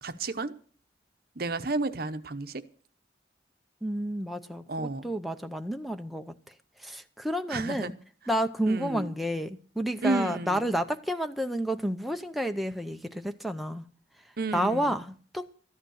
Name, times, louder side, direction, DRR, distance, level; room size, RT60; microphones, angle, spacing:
voice 1, 0.0-0.5 1.4-2.6 4.7-5.1 7.5-7.9 8.7-9.1 10.0-10.7 14.4-15.0, right 2 dB, 60° right, 0.9 m, -31 dB
voice 2, 3.8-6.5 6.8-7.9 8.3-13.9 14.2-15.5, equal, ahead, 0.7 m, -30 dB
13.5 x 11.0 x 6.4 m
head